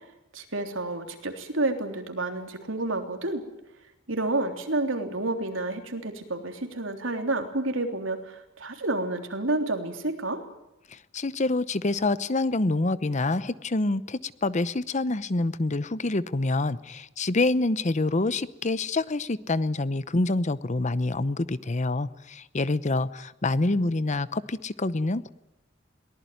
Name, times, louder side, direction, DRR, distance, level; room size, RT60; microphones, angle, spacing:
voice 1, 0.3-3.4 4.1-10.4, right 2 dB, 85° right, 5 dB, 3.5 m, -29 dB
voice 2, 10.9-25.3, left 2 dB, 40° left, 16 dB, 0.8 m, -26 dB
22.5 x 19.0 x 9.4 m, 0.92 s
head